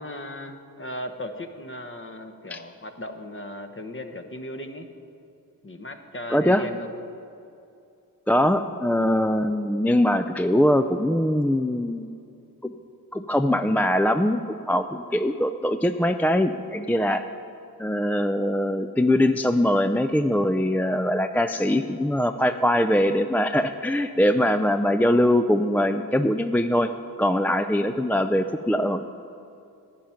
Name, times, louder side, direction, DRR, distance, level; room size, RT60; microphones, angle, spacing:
voice 1, 0.0-4.9 5.6-6.9 24.3-24.6 27.6-27.7, left 1 dB, 35° left, 7 dB, 1.1 m, -37 dB
voice 2, 6.3-6.6 8.3-12.1 12.6-12.7 13.1-17.2 17.8-26.9 27.2-29.1, left 1 dB, 5° left, 9 dB, 0.4 m, -22 dB
11.5 x 9.2 x 5.7 m, 2.6 s
cardioid pair, 40°, 37 cm